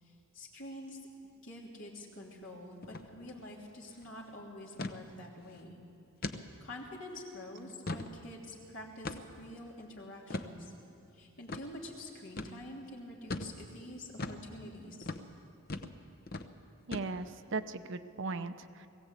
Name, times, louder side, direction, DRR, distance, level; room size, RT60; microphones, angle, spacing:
voice 1, 0.0-5.8 6.2-10.7 11.1-15.1, left 1 dB, 60° left, -2 dB, 3.3 m, -47 dB
sound 1, 2.8-3.1 3.4-3.5 3.8-4.1 4.8-5.0 5.5-5.6 6.2-6.4 6.9-7.0 7.6-8.1 9.0-9.4 10.3-10.5 11.5-11.6 12.4-12.6 13.3-13.5 14.2-14.4 15.0-15.2 15.7-16.0 16.3-16.5 16.9-17.4, left 2 dB, 45° left, 0.9 m, -39 dB
voice 2, 16.9-18.9, right 3 dB, 60° right, 10 dB, 0.7 m, -38 dB
20.5 x 16.0 x 8.3 m, 2.6 s
head